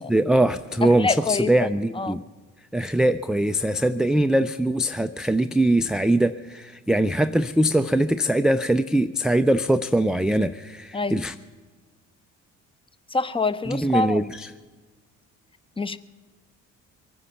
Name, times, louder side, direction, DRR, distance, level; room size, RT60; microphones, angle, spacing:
voice 1, 0.1-2.2 2.7-11.4 13.7-14.5, right 1 dB, ahead, 9 dB, 0.4 m, -22 dB
voice 2, 0.8-1.7 1.9-2.2 10.9-11.2 13.1-14.2 15.8-16.0, left 3 dB, 15° left, 14 dB, 0.7 m, -25 dB
23.0 x 9.7 x 5.9 m, 1.4 s
supercardioid pair, 60°, 37 cm